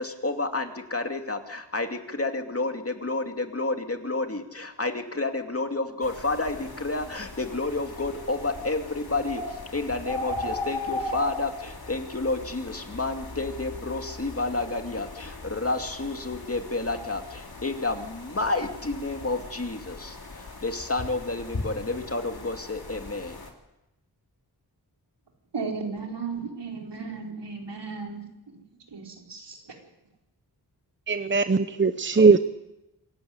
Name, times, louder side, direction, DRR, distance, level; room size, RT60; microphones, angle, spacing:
voice 1, 0.0-9.4 9.7-17.2 17.6-20.1 20.6-23.3, left 3 dB, 35° left, 5 dB, 2.5 m, -30 dB
sound 1, 6.0-23.5, left 2 dB, 60° left, 3.8 m, -38 dB
voice 2, 25.5-28.6 28.9-29.6, right 4 dB, 80° right, 1 dB, 4.7 m, -35 dB
voice 3, 31.1-32.4, right 4 dB, 30° right, 10 dB, 0.8 m, -19 dB
26.5 x 15.0 x 9.7 m, 0.94 s
wide cardioid pair, 85°, 41 cm